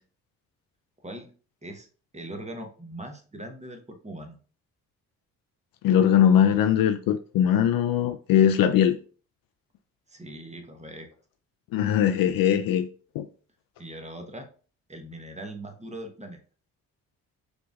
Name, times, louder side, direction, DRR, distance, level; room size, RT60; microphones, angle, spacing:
voice 1, 1.0-1.3 1.6-1.9 2.1-4.4 10.1-11.1 13.8-14.5 14.9-16.4, right 1 dB, 15° right, 1.0 m, -40 dB
voice 2, 5.8-9.0 11.7-12.9 13.1-13.3, left 9 dB, 55° left, 0.5 m, -21 dB
4.9 x 3.3 x 2.4 m
hypercardioid pair, 45°, 44 cm